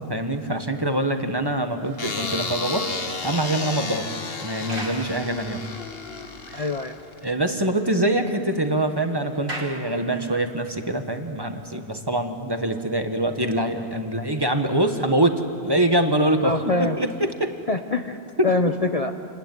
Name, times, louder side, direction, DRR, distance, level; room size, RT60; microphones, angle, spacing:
voice 1, 0.0-2.9 3.2-4.1 4.4-5.6 6.5-6.6 7.2-17.5 18.4-18.5, right 1 dB, 20° right, 6 dB, 1.4 m, -24 dB
sound 1, 2.0-7.3, left 4 dB, 60° left, 1.6 m, -32 dB
sound 2, 2.7-6.0 6.6-6.7 7.0-7.1 7.4-10.6, right 1 dB, 55° right, 2.5 m, -42 dB
voice 2, 6.5-7.0 16.4-17.0 17.7-19.1, left 2 dB, 35° left, 6 dB, 0.9 m, -24 dB
28.0 x 19.5 x 9.4 m, 2.6 s
omnidirectional pair, 1.1 m